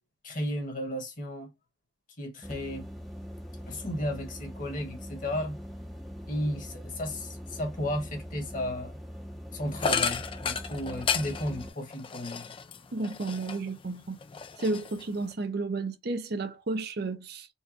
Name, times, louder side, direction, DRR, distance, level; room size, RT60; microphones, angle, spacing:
voice 1, 0.2-1.5 2.2-2.9 3.7-5.6 6.3-9.0 9.5-12.5, left 1 dB, 40° left, 1.3 m, -34 dB
sound 1, 2.4-11.7, equal, ahead, 0.6 m, -42 dB
sound 2, 9.8-13.8 14.2-15.3, left 6 dB, 25° left, 0.3 m, -33 dB
voice 2, 12.9-14.2 14.6-17.5, right 3 dB, 50° right, 0.6 m, -32 dB
4.5 x 2.2 x 2.8 m
head